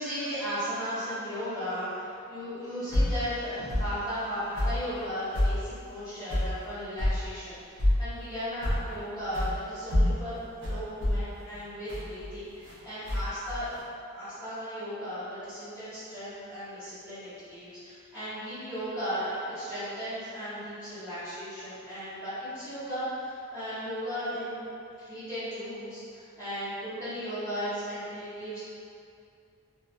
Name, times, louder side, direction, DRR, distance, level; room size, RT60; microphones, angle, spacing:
voice 1, 0.0-13.7 14.1-24.6 25.0-28.6, equal, 10° right, -19 dB, 0.8 m, -36 dB
sound 1, 2.9-3.2 3.7-3.9 4.5-4.8 5.3-5.6 6.3-6.5 7.0-7.2 7.8-8.1 8.6-8.9 9.3-9.5 9.9-12.7 13.1-13.8, left 1 dB, 60° right, 0.8 m, -27 dB
2.9 x 2.5 x 2.4 m, 2.5 s
head